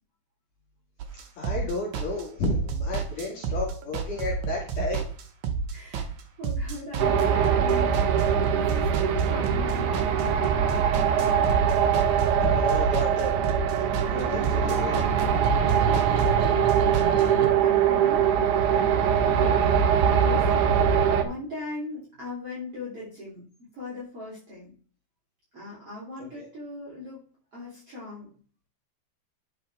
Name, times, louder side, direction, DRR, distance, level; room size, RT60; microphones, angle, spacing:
sound 1, 1.0-17.5, right 5 dB, 65° right, 1.9 m, -31 dB
voice 1, 1.4-5.1 12.4-13.4 14.1-15.1 26.2-26.4, left 3 dB, 55° left, -4 dB, 3.3 m, -32 dB
voice 2, 5.7-9.9 16.3-19.8 20.2-20.7 21.2-23.4 23.7-24.7 25.5-27.3 27.5-28.3, left 2 dB, 35° right, -7 dB, 3.8 m, -39 dB
sound 2, 7.0-21.2, right 8 dB, 80° right, 1.8 m, -22 dB
10.5 x 6.7 x 3.5 m, 0.43 s
omnidirectional pair, 4.7 m